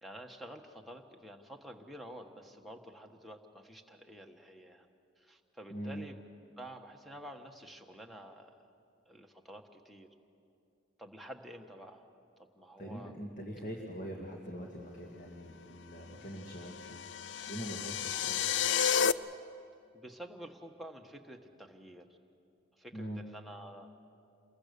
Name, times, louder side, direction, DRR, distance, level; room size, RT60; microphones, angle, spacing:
voice 1, 0.0-4.9 5.2-6.2 6.6-8.7 9.1-10.1 11.0-12.1 12.5-13.1 19.9-22.1 22.8-23.9, right 1 dB, ahead, 4 dB, 1.3 m, -49 dB
voice 2, 5.7-6.0 12.8-17.0 17.5-18.5 22.9-23.2, equal, 40° left, 0 dB, 2.1 m, -43 dB
sound 1, 16.6-19.1, left 7 dB, 70° left, 0.5 m, -31 dB
28.5 x 22.0 x 6.8 m, 2.6 s
head